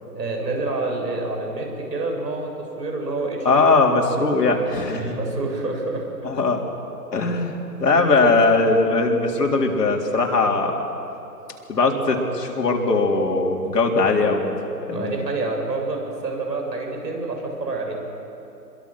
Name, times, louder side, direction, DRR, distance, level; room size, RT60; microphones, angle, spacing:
voice 1, 0.0-3.8 4.9-6.1 8.0-8.2 14.9-18.0, right 3 dB, 75° right, 1 dB, 7.4 m, -28 dB
voice 2, 3.4-5.2 6.2-6.6 7.1-10.8 11.7-14.5 14.9-15.1, left 3 dB, 70° left, 1 dB, 3.8 m, -20 dB
27.0 x 23.0 x 6.3 m, 2.9 s
hypercardioid pair, 160°, 50 cm